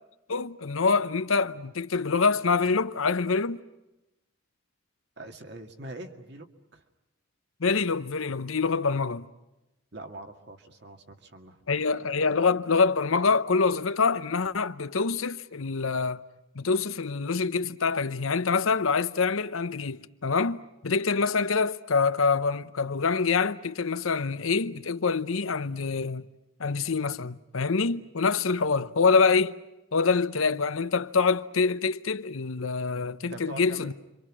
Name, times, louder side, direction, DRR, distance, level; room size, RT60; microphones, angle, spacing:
voice 1, 0.3-3.6 7.6-9.3 11.7-16.2 16.5-20.6 20.8-26.2 26.6-29.5 29.9-33.9, left 4 dB, 80° left, 0.8 m, -25 dB
voice 2, 5.2-6.8 9.9-11.6 33.3-33.9, right 1 dB, 55° right, 2.1 m, -43 dB
30.0 x 25.0 x 6.2 m
head